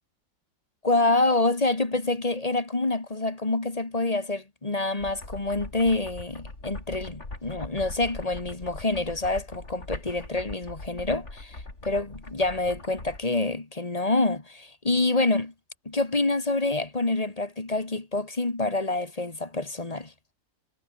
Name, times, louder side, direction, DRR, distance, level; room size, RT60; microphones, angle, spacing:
voice 1, 0.8-11.6 11.8-15.5 15.9-20.1, left 2 dB, 20° left, 1.9 m, -27 dB
sound 1, 5.0-13.2, left 2 dB, 40° left, 4.8 m, -41 dB
omnidirectional pair, 1.8 m